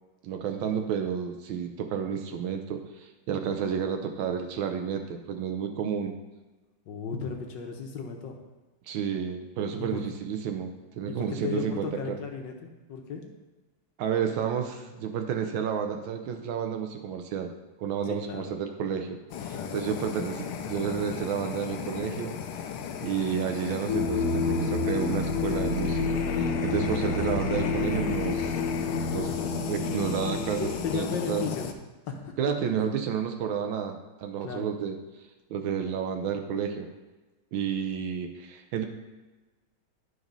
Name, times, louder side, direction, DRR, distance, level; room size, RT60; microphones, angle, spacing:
voice 1, 0.2-6.1 8.9-12.2 14.0-17.5 17.8-22.3 23.0-28.5 29.1-31.4 32.4-35.0 35.5-36.9 37.5-38.9, right 7 dB, 75° right, 5 dB, 1.4 m, -31 dB
voice 2, 6.9-8.3 9.8-10.0 11.1-12.5 12.9-13.2 18.1-18.5 19.5-20.0 30.6-31.7 32.1-32.3 34.4-34.7, left 5 dB, 65° left, 2 dB, 1.6 m, -35 dB
Fire, 19.3-31.7, left 8 dB, 85° left, 1.5 m, -35 dB
sound 1, 23.9-31.0, left 4 dB, 45° left, 1.1 m, -29 dB
11.0 x 4.0 x 5.3 m, 1.2 s
omnidirectional pair, 2.3 m